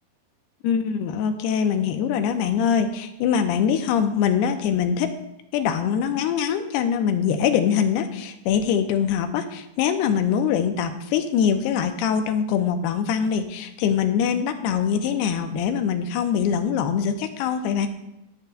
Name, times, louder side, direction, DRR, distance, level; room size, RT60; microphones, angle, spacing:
voice 1, 0.6-5.1 5.5-17.9, left 7 dB, 85° left, 7 dB, 2.8 m, -23 dB
21.5 x 8.4 x 2.3 m, 0.87 s
omnidirectional pair, 4.6 m